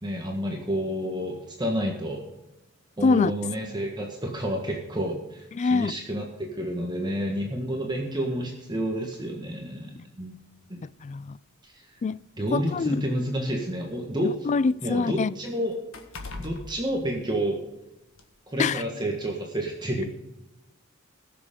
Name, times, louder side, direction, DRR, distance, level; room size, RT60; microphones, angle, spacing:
voice 1, 0.0-2.2 3.0-10.3 10.7-10.8 11.6-11.9 12.4-14.3 14.8-15.8 16.4-17.6 18.5-20.0, equal, 20° right, 1.5 m, -30 dB
voice 2, 5.6-5.9 11.0-11.4 12.0-12.2 12.5-13.0 14.5-15.3 18.6-18.8, left 4 dB, 35° left, 0.3 m, -24 dB
sound 1, 9.1-9.3 10.3-10.4 10.9-11.0 12.0-13.9 14.3-17.8 18.1-18.3, left 3 dB, 70° left, 1.6 m, -44 dB
20.5 x 6.8 x 3.7 m
head